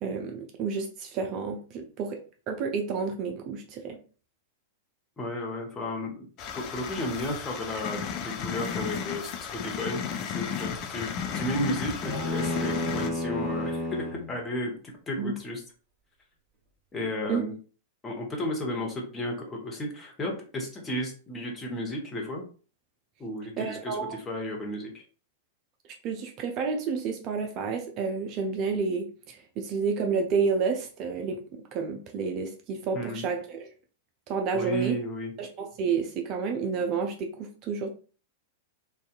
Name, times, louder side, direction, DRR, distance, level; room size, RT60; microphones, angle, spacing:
voice 1, 0.0-2.2 2.5-4.0 15.2-15.3 17.3-17.4 23.6-24.2 26.0-33.7 34.3-35.0 35.4-37.9, right 5 dB, 35° right, 3 dB, 0.4 m, -30 dB
voice 2, 5.2-6.2 6.6-10.0 10.3-14.7 15.1-15.6 16.9-17.5 18.0-22.4 23.2-25.0 32.9-33.2 34.5-35.3, left 1 dB, 15° left, -1 dB, 0.8 m, -33 dB
sound 1, 6.4-13.1, left 7 dB, 35° left, 0.3 m, -34 dB
sound 2, 12.0-14.3, left 2 dB, 15° right, 0.9 m, -31 dB
2.6 x 2.2 x 2.4 m, 0.38 s
figure-of-eight pair, 95°, 0 cm